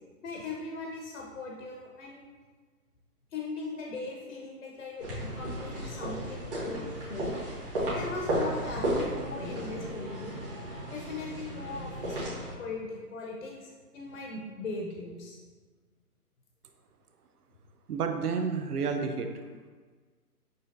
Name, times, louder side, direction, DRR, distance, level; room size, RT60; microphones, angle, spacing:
voice 1, 0.2-2.3 3.3-7.4 7.9-10.4 10.9-12.2 12.6-15.4, left 3 dB, 55° left, -1 dB, 0.6 m, -39 dB
sound 1, 5.0-12.5, right 1 dB, 35° right, 1.3 m, -34 dB
voice 2, 17.9-19.3, right 5 dB, 70° right, 5 dB, 0.6 m, -30 dB
6.4 x 2.7 x 2.5 m, 1.5 s
hypercardioid pair, 175°, 47 cm